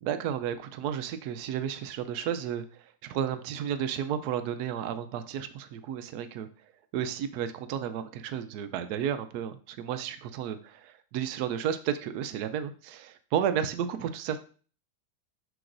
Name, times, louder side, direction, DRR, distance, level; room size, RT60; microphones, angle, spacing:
voice 1, 0.0-6.5 6.9-14.4, right 9 dB, 90° right, 9 dB, 0.8 m, -32 dB
7.8 x 6.1 x 2.5 m, 0.40 s
omnidirectional pair, 2.3 m